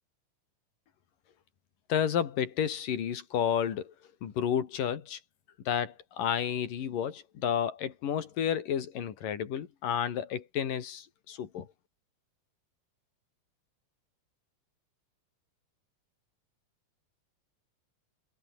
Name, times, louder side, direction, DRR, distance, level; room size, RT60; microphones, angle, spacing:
voice 1, 1.9-3.9 4.2-5.2 5.7-11.7, left 9 dB, 90° left, 4.0 m, -31 dB
omnidirectional pair, 3.7 m